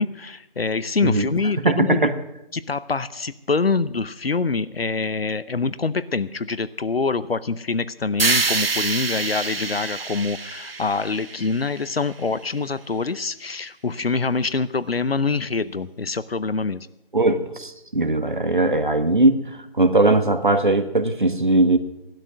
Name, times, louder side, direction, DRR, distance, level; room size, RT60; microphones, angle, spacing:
voice 1, 0.0-2.0 2.5-16.9, left 4 dB, 85° left, 16 dB, 0.7 m, -25 dB
voice 2, 1.6-2.1 17.1-21.8, right 2 dB, 55° right, 9 dB, 1.4 m, -19 dB
sound 1, 8.2-12.3, right 3 dB, 75° right, 0.8 m, -26 dB
15.5 x 12.0 x 6.3 m, 0.89 s
figure-of-eight pair, 175°, 29 cm